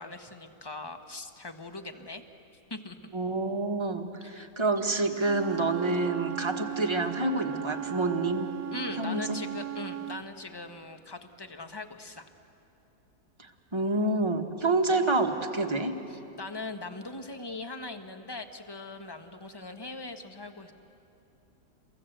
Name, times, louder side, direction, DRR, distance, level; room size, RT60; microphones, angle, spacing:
voice 1, 0.0-2.2 2.7-3.0 4.2-4.5 8.7-12.2 16.1-20.7, left 2 dB, 15° left, 7 dB, 1.1 m, -40 dB
voice 2, 3.1-8.5 9.0-9.4 13.4-16.0, right 2 dB, 20° right, 4 dB, 1.5 m, -28 dB
Wind instrument woodwind instrument, 5.2-10.2, right 12 dB, 70° right, 1.3 m, -37 dB
29.5 x 23.0 x 7.9 m, 2.8 s
omnidirectional pair, 1.6 m